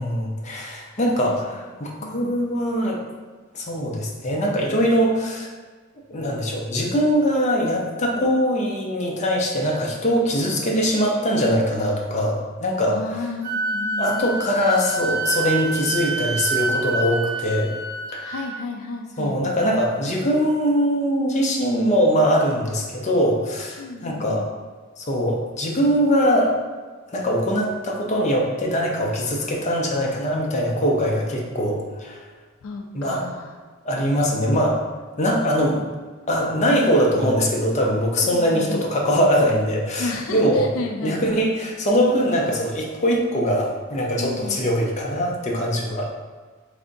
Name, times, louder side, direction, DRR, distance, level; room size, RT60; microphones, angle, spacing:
voice 1, 0.0-3.0 3.5-5.5 6.1-13.0 14.0-17.7 18.1-18.3 19.2-24.5 25.0-26.5 27.1-32.2 32.9-33.2 33.8-34.8 35.2-35.8 36.3-40.7 41.0-46.1, equal, 35° left, -1 dB, 0.6 m, -22 dB
voice 2, 2.0-2.5 8.1-8.2 12.9-14.3 18.1-19.4 23.8-24.5 32.6-33.5 38.2-38.9 40.0-41.4 44.2-44.7, left 3 dB, 80° left, 3 dB, 0.3 m, -33 dB
Wind instrument woodwind instrument, 13.4-18.6, right 3 dB, 50° right, 0.7 m, -27 dB
3.4 x 2.6 x 3.8 m, 1.4 s
head